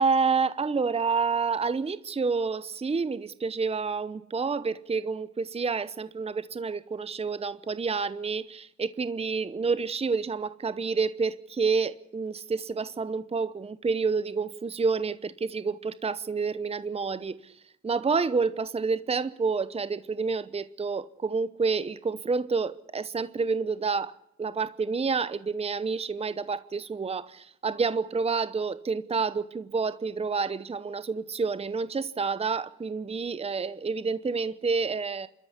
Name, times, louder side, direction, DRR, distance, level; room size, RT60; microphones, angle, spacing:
voice 1, 0.0-17.5 17.8-24.1 24.4-35.3, right 4 dB, 20° right, 0.9 m, -29 dB
27.0 x 13.0 x 8.3 m
cardioid pair, 90°, 30 cm